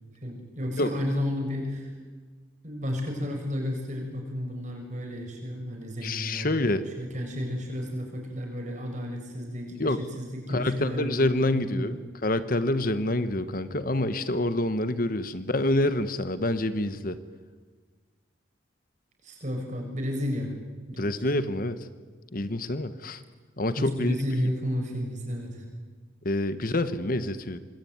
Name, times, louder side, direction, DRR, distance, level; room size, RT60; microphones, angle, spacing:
voice 1, 0.2-1.9 2.6-12.0 19.2-20.5 20.9-21.2 23.8-25.7, equal, 40° right, 2 dB, 7.1 m, -32 dB
voice 2, 6.0-6.8 9.8-10.0 10.5-11.9 12.2-17.2 21.0-21.8 22.3-23.2 23.6-24.2 26.2-27.6, left 1 dB, 45° left, 12 dB, 1.1 m, -27 dB
26.5 x 21.5 x 9.5 m, 1.4 s
head